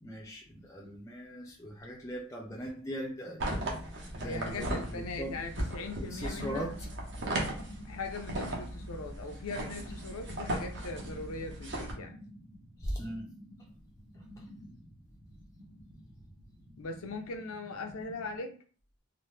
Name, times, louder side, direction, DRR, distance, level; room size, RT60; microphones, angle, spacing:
voice 1, 0.0-3.7 4.1-5.3 6.1-6.7 12.8-13.3, equal, 15° left, -1 dB, 0.4 m, -39 dB
sound 1, 2.6-18.4, equal, 30° right, 1.0 m, -51 dB
sound 2, 3.4-11.9, right 1 dB, 55° right, 0.7 m, -37 dB
voice 2, 4.2-6.7 7.8-12.2 16.8-18.5, left 3 dB, 85° left, 5 dB, 0.6 m, -40 dB
2.9 x 2.0 x 3.2 m, 0.40 s
head